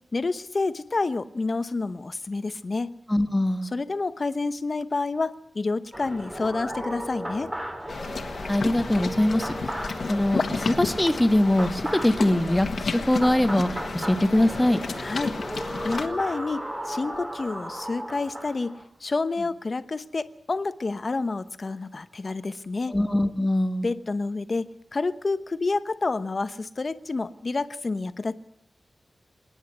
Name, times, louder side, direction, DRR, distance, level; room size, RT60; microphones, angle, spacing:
voice 1, 0.1-2.9 3.7-7.5 15.0-15.4 15.8-22.9 23.8-28.3, left 3 dB, 45° left, 12 dB, 1.0 m, -29 dB
voice 2, 3.1-3.7 8.5-9.5 10.1-13.7 13.9-14.8 22.9-23.9, left 1 dB, 10° left, 9 dB, 1.4 m, -22 dB
sound 1, 5.9-18.8, right 1 dB, 15° right, 3.3 m, -36 dB
sound 2, 7.9-16.1, left 4 dB, 70° left, 1.6 m, -32 dB
26.0 x 10.0 x 9.8 m, 0.74 s
wide cardioid pair, 95°, 0 cm